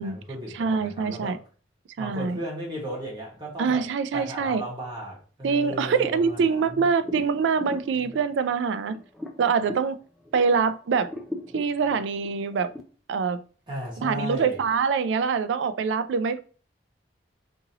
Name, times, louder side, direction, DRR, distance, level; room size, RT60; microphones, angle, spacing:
voice 1, 0.0-1.4 2.0-3.9 4.1-6.9 13.7-14.6, equal, 25° right, 1.1 m, -35 dB
voice 2, 0.5-1.4 2.0-2.4 3.6-4.6 5.4-9.0 9.4-10.0 10.3-11.1 11.5-12.7 13.1-13.4 14.0-16.4, right 5 dB, 90° right, 0.3 m, -24 dB
sound 1, 6.0-10.6 11.0-12.8, left 1 dB, ahead, 0.4 m, -38 dB
2.8 x 2.6 x 3.8 m
head